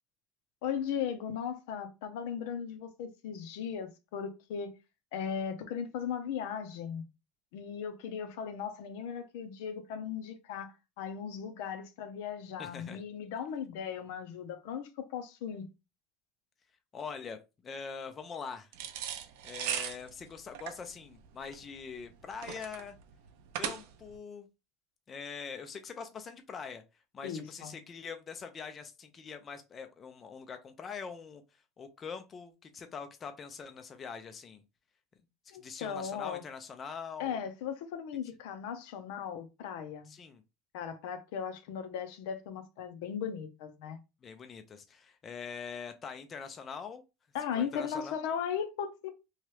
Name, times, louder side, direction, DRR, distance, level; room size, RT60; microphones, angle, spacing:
voice 1, 0.6-4.7 5.1-7.0 7.5-15.7 27.2-27.8 35.5-36.4 37.2-40.1 40.7-44.0 47.3-49.1, left 7 dB, 75° left, 0.6 m, -37 dB
voice 2, 12.6-13.0 16.9-17.4 17.6-18.7 19.4-23.0 23.5-24.5 25.1-34.6 35.4-37.4 40.0-40.4 44.2-47.0 47.5-48.2, left 6 dB, 25° left, 0.3 m, -43 dB
sound 1, 18.7-24.2, right 9 dB, 80° right, 0.5 m, -38 dB
2.9 x 2.3 x 3.1 m
cardioid pair, 155°, 0 cm